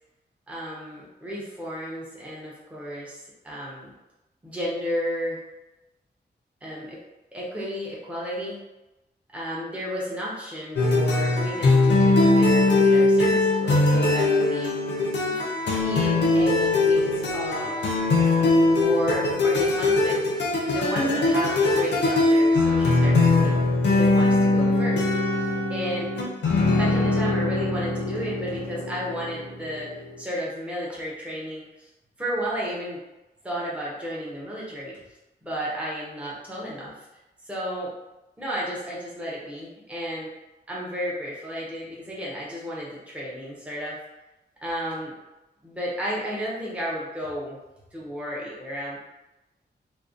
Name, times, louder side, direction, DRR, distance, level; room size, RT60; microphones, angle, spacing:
voice 1, 0.5-3.9 4.4-5.4 6.6-7.0 7.3-8.6 9.3-14.8 15.8-17.9 18.7-20.2 20.7-23.6 23.8-25.0 25.7-26.1 26.7-29.9 30.2-31.9 32.2-33.0 33.4-35.0 35.4-37.1 37.4-37.9 38.4-40.3 40.7-44.0 44.6-45.1 45.6-47.6 47.9-49.0, equal, 5° right, -6 dB, 0.5 m, -32 dB
sound 1, 10.8-30.1, left 2 dB, 80° left, 0.5 m, -21 dB
2.5 x 2.1 x 2.4 m, 1.0 s
wide cardioid pair, 160°, 18 cm